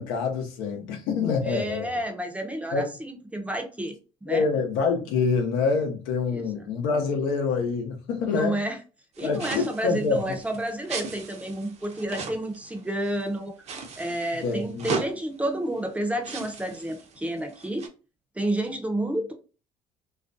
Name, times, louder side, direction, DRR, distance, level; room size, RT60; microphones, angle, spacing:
voice 1, 0.0-1.9 2.7-2.8 4.3-8.6 9.2-10.3 14.4-15.0, left 4 dB, 85° left, 0.7 m, -26 dB
voice 2, 1.4-3.9 4.2-4.5 6.3-6.4 8.3-8.8 9.2-13.6 14.0-17.9 18.4-19.3, right 1 dB, 10° right, 0.5 m, -30 dB
sound 1, 9.2-13.3 13.7-15.1 15.8-15.9 16.2-17.9, right 4 dB, 50° right, 0.6 m, -37 dB
2.4 x 2.1 x 2.5 m
supercardioid pair, 80°, 15 cm